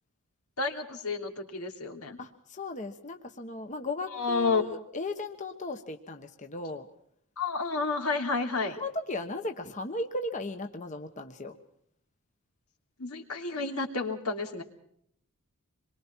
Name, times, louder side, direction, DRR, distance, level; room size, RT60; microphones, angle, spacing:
voice 1, 0.6-2.2 4.1-4.7 7.4-8.8 13.0-14.6, left 4 dB, 85° left, 3 dB, 3.2 m, -30 dB
voice 2, 2.2-6.9 8.7-11.6, left 2 dB, 35° left, 5 dB, 1.2 m, -36 dB
27.0 x 23.0 x 4.6 m, 0.68 s
head